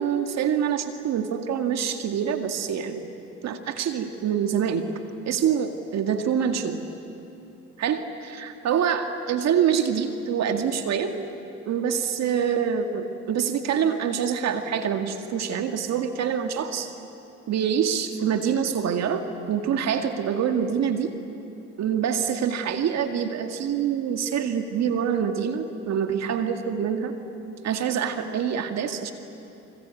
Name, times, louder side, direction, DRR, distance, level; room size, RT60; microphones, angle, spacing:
voice 1, 0.0-3.1 3.4-4.9 5.3-6.8 7.8-11.1 11.7-16.9 17.5-21.1 21.8-27.1 27.6-29.1, right 8 dB, 60° right, 6 dB, 2.1 m, -25 dB
26.0 x 25.5 x 8.5 m, 2.8 s
hypercardioid pair, 60°, 30 cm